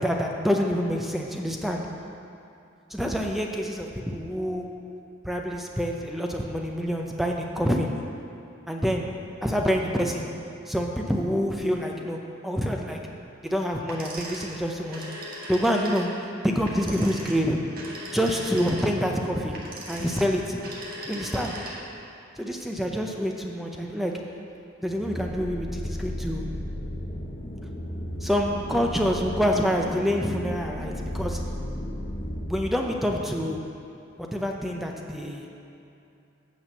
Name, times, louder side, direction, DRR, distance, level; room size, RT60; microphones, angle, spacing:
voice 1, 0.0-1.9 2.9-4.7 5.2-7.9 8.7-9.1 9.4-10.3 10.7-12.2 12.4-13.0 13.4-15.0 15.5-16.1 16.4-17.6 18.1-19.6 19.9-20.6 21.0-21.6 22.4-24.1 24.8-26.5 28.2-31.4 32.5-33.6 34.3-35.5, equal, ahead, 1 dB, 0.6 m, -27 dB
sound 1, 13.9-22.0, right 1 dB, 50° right, 1.7 m, -39 dB
sound 2, 24.9-32.6, equal, 45° left, 1.0 m, -34 dB
8.8 x 6.3 x 6.9 m, 2.8 s
head